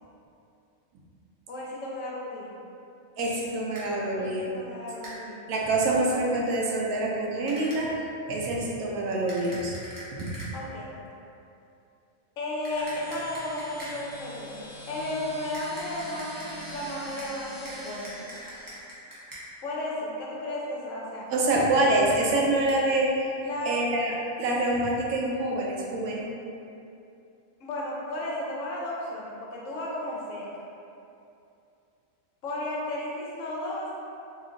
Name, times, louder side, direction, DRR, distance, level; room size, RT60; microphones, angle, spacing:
voice 1, 1.5-2.6 4.2-5.6 10.5-10.9 12.4-18.3 19.6-21.3 21.8-22.0 23.4-23.8 27.6-30.7 32.4-33.9, left 1 dB, 70° left, -4 dB, 0.9 m, -34 dB
voice 2, 3.2-4.6 5.5-7.9 8.3-9.8 10.1-10.3 21.3-23.3 23.7-26.2, right 2 dB, 90° right, -2 dB, 1.1 m, -26 dB
sound 1, 3.7-3.9 5.0-5.2 7.5-7.8 9.3-10.5 12.6-14.0 15.5-17.3 17.6-19.4 21.5-21.6 22.1-22.2 22.7-22.8, equal, 25° right, 0.5 m, -43 dB
sound 2, 12.7-18.8, equal, 15° left, 0.9 m, -44 dB
2.9 x 2.4 x 3.7 m, 2.7 s
omnidirectional pair, 1.5 m